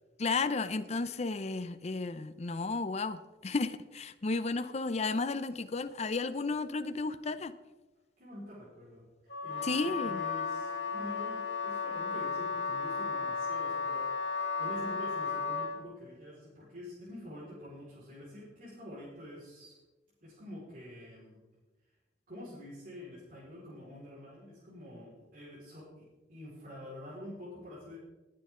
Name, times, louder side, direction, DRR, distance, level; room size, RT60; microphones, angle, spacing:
voice 1, 0.2-3.2 3.4-7.5 9.6-10.1, left 3 dB, 35° left, 11 dB, 0.6 m, -33 dB
voice 2, 8.2-19.7 20.2-21.4 22.3-26.0 26.3-28.0, left 1 dB, 50° right, -9 dB, 4.8 m, -47 dB
Wind instrument woodwind instrument, 9.3-15.8, left 5 dB, 70° left, 2.3 m, -34 dB
19.5 x 8.7 x 3.8 m, 1.1 s
head